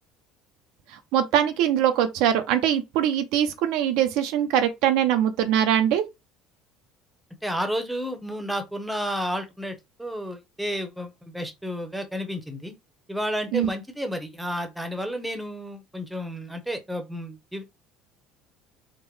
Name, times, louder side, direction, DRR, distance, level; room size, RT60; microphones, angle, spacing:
voice 1, 1.1-6.0 13.5-13.7, right 10 dB, 75° right, 0.5 m, -22 dB
voice 2, 7.4-12.7 13.1-17.6, equal, 5° right, 0.8 m, -31 dB
3.6 x 2.1 x 3.1 m
supercardioid pair, 105°, 0 cm